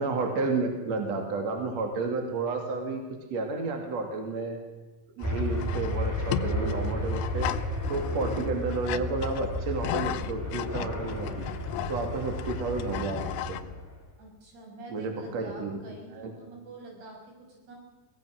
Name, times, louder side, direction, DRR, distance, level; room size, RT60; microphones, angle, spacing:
voice 1, 0.0-3.0 3.3-4.6 5.2-7.5 7.9-11.5 11.9-13.6 14.9-15.8 16.1-16.3, right 3 dB, 45° right, 3 dB, 3.2 m, -31 dB
sound 1, 5.2-13.6, left 13 dB, 85° left, 2.8 m, -36 dB
sound 2, 5.2-14.0, left 1 dB, 5° left, 2.4 m, -33 dB
voice 2, 14.2-17.8, right 2 dB, 75° right, 0 dB, 8.0 m, -46 dB
23.5 x 18.0 x 6.4 m, 1.2 s
omnidirectional pair, 4.6 m